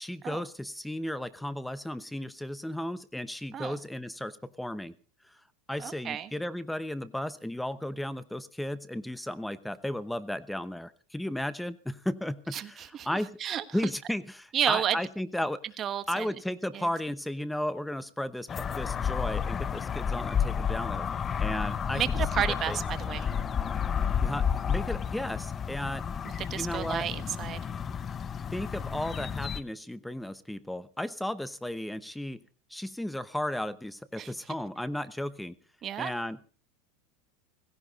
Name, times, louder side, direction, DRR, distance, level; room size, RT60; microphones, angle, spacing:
voice 1, 0.0-5.0 5.7-13.4 13.7-15.6 16.1-21.1 21.4-22.0 22.5-22.8 24.2-26.1 26.5-27.1 28.5-32.4 32.7-35.6 36.0-36.4, left 1 dB, 5° left, 15 dB, 0.9 m, -34 dB
voice 2, 5.8-6.3 12.5-13.1 13.4-13.6 14.5-15.0 15.8-16.3 16.7-16.9 21.9-23.3 26.4-27.6 34.2-34.3 35.8-36.1, right 10 dB, 35° right, 12 dB, 1.3 m, -31 dB
sound 1, 18.5-29.6, left 7 dB, 25° left, 0.7 m, -31 dB
17.0 x 16.5 x 4.2 m, 0.40 s
supercardioid pair, 120°, 0 cm